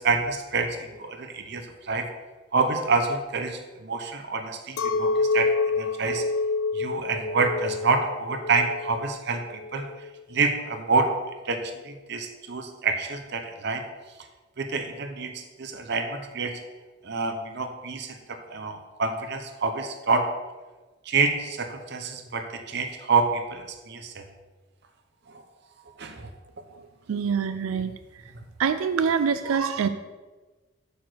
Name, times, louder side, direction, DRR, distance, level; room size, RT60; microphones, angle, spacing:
voice 1, 0.0-2.1 2.5-6.3 6.7-11.1 11.4-13.9 14.6-16.6 17.0-20.3 21.0-24.2 25.3-25.4 26.0-26.3, right 4 dB, 55° right, 6 dB, 0.7 m, -27 dB
Chink clink, 4.8-10.2, left 3 dB, 75° left, 0.4 m, -27 dB
voice 2, 27.1-27.9 28.6-29.9, right 6 dB, 85° right, 10 dB, 0.4 m, -25 dB
8.0 x 4.7 x 6.3 m, 1.3 s
head